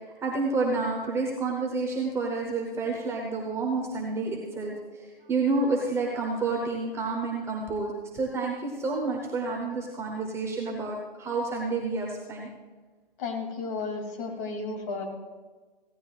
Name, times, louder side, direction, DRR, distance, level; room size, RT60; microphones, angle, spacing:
voice 1, 0.2-12.5, right 3 dB, 10° right, -1 dB, 0.9 m, -29 dB
voice 2, 13.2-15.0, left 4 dB, 35° left, 2 dB, 2.6 m, -33 dB
16.5 x 15.5 x 2.4 m, 1.3 s
figure-of-eight pair, 135°, 29 cm